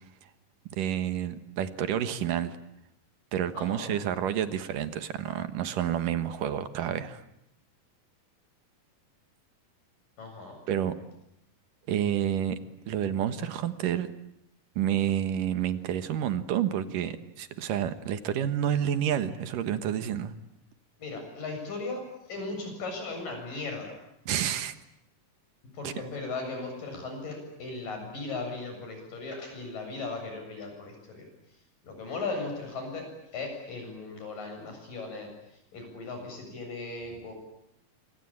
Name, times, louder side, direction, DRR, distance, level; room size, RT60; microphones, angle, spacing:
voice 1, 0.7-2.6 3.3-7.2 10.7-10.9 11.9-12.6 12.9-14.1 14.8-20.3 24.3-24.7 25.8-25.9, right 10 dB, 75° right, 11 dB, 3.0 m, -29 dB
voice 2, 3.5-3.9 10.2-10.6 21.0-22.0 22.3-24.1 25.7-31.2 31.8-33.1 33.3-35.3 35.7-37.3, left 3 dB, 80° left, 4 dB, 9.4 m, -37 dB
26.5 x 25.5 x 8.8 m, 0.79 s
omnidirectional pair, 3.8 m